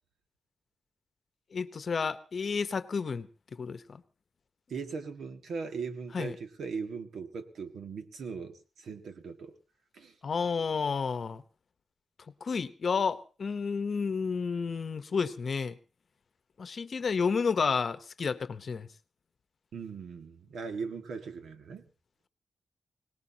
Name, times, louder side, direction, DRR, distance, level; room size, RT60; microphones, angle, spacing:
voice 1, 1.5-4.0 6.1-6.4 10.2-11.4 12.4-15.8 16.6-18.9, left 5 dB, 50° left, 12 dB, 0.9 m, -31 dB
voice 2, 4.7-9.6 9.9-10.2 19.7-21.9, right 5 dB, 85° right, 6 dB, 1.9 m, -39 dB
25.5 x 18.5 x 2.9 m, 0.35 s
wide cardioid pair, 150°, 0 cm